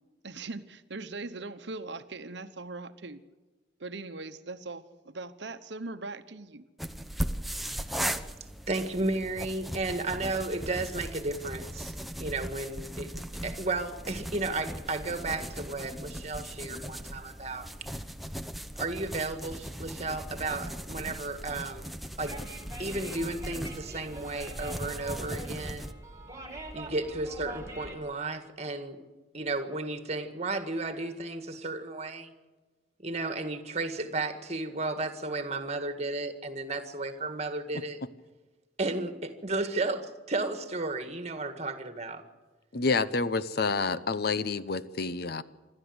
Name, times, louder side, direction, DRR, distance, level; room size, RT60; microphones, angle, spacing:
voice 1, 0.2-3.2 3.8-6.6, right 3 dB, 65° right, 11 dB, 1.0 m, -40 dB
sound 1, 6.8-25.9, equal, ahead, 0.8 m, -38 dB
voice 2, 8.7-11.9 12.2-17.9 18.8-21.9 22.2-22.4 22.8-25.9 26.7-29.0 29.3-32.3 33.0-38.0 38.8-42.2, right 2 dB, 35° right, 9 dB, 1.8 m, -33 dB
sound 2, 22.3-28.0, right 1 dB, 15° right, 2.8 m, -44 dB
voice 3, 42.7-45.4, left 4 dB, 55° left, 14 dB, 0.8 m, -28 dB
26.0 x 13.0 x 8.1 m, 1.3 s
head